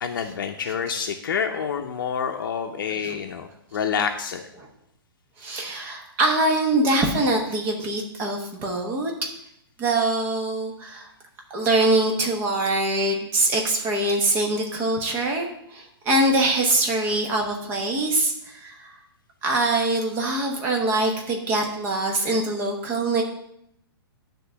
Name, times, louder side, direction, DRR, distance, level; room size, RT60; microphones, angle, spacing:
voice 1, 0.0-4.4, left 7 dB, 60° left, 4 dB, 0.8 m, -28 dB
voice 2, 5.4-9.1 9.8-11.1 11.5-19.0 19.4-23.2, right 2 dB, 15° right, 1 dB, 1.1 m, -23 dB
9.7 x 3.8 x 7.0 m, 0.77 s
hypercardioid pair, 175°, 13 cm